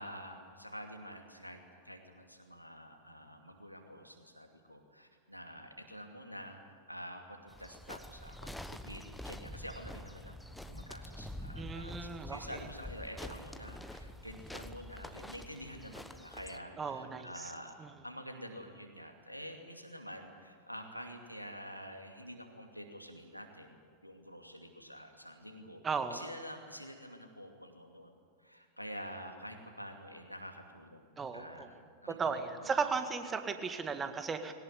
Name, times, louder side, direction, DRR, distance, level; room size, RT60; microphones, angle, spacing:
voice 1, 0.0-23.8 24.0-25.8 26.1-28.1 28.4-32.5, equal, 90° left, 4 dB, 2.6 m, -48 dB
sound 1, 7.5-16.6, left 1 dB, 5° left, 1.1 m, -46 dB
voice 2, 11.6-12.6 16.8-17.5 17.8-17.9 25.8-26.2 31.2-31.7 32.1-34.5, right 5 dB, 20° right, 8 dB, 1.8 m, -36 dB
21.0 x 18.5 x 9.8 m, 2.1 s
figure-of-eight pair, 90°, 0 cm